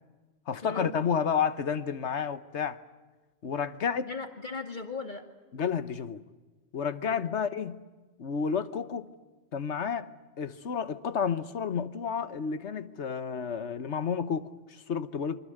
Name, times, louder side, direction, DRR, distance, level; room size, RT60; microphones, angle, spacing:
voice 1, 0.5-2.8 3.4-4.1 5.5-6.2 6.7-7.8 8.2-9.1 9.5-10.1 10.4-15.4, left 6 dB, 80° left, 1.4 m, -31 dB
voice 2, 4.0-5.2 7.0-7.3, left 4 dB, 45° left, 2.4 m, -38 dB
28.0 x 24.5 x 7.9 m
omnidirectional pair, 1.2 m